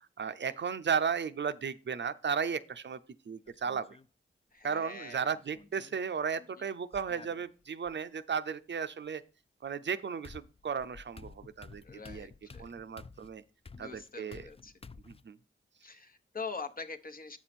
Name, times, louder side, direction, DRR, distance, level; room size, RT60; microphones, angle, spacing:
voice 1, 0.0-3.0 3.3-4.0 4.6-9.2 9.6-12.3 12.6-13.4 13.8-14.4 15.1-15.4, right 6 dB, 60° right, 12 dB, 0.5 m, -35 dB
sound 1, 3.5-4.1 5.3-6.0 6.9-7.9 9.6-9.7 10.2-15.2, left 4 dB, 25° left, 0.4 m, -52 dB
voice 2, 4.5-5.3 6.4-6.7 11.8-12.7 13.8-14.7 15.8-17.4, left 4 dB, 45° left, 6 dB, 1.0 m, -44 dB
7.3 x 6.1 x 4.2 m, 0.36 s
cardioid pair, 40°, 21 cm